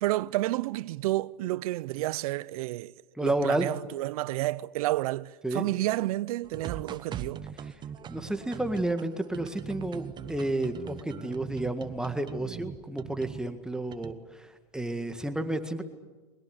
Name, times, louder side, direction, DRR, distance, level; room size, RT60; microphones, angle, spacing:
voice 1, 0.0-2.9 3.2-7.5, right 17 dB, 60° right, 0.7 m, -30 dB
voice 2, 3.2-3.7 5.4-5.6 8.1-14.5 14.7-15.8, right 1 dB, 5° right, 1.8 m, -31 dB
sound 1, 6.4-13.5 13.9-14.1, right 8 dB, 20° right, 1.0 m, -41 dB
22.0 x 20.5 x 9.9 m
hypercardioid pair, 130°, 21 cm